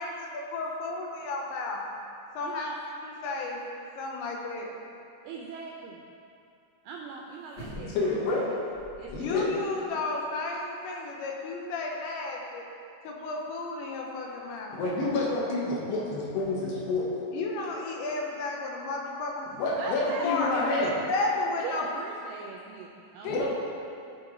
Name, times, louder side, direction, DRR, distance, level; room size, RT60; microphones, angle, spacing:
voice 1, 0.5-1.8 2.3-2.7 3.0-3.6 4.0-4.7 9.2-12.7 13.0-14.8 17.3-19.5 20.2-20.5 20.8-21.9 23.2-23.5, left 3 dB, 90° left, -1 dB, 3.3 m, -32 dB
voice 2, 2.4-2.8 5.2-6.1 6.8-8.2 8.5-8.7 9.0-9.8 19.8-21.1 21.6-23.5, right 5 dB, 85° right, 0 dB, 2.3 m, -41 dB
sound 1, 7.5-8.2 8.7-9.5 9.8-9.9, equal, 50° left, 0.6 m, -44 dB
voice 3, 7.8-8.5 9.1-9.4 14.7-17.1 19.5-20.9 23.3-23.5, left 2 dB, 70° left, -5 dB, 3.3 m, -28 dB
13.5 x 4.6 x 4.7 m, 2.5 s
omnidirectional pair, 5.2 m